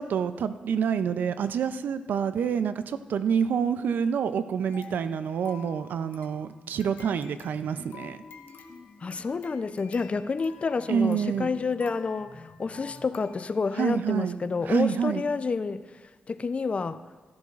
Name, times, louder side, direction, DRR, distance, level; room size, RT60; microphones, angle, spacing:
voice 1, 0.0-8.2 10.9-11.5 13.8-14.4 14.7-15.2, right 7 dB, 75° right, 12 dB, 0.5 m, -27 dB
sound 1, 4.7-13.8 14.3-14.4 14.7-14.9, left 6 dB, 80° left, 0.9 m, -51 dB
sound 2, 6.2-13.1, left 2 dB, 60° left, 1.8 m, -52 dB
voice 2, 9.0-15.8 16.3-17.0, left 4 dB, 40° left, 13 dB, 0.5 m, -29 dB
15.0 x 13.0 x 2.5 m, 1.3 s
cardioid pair, 65°, 3 cm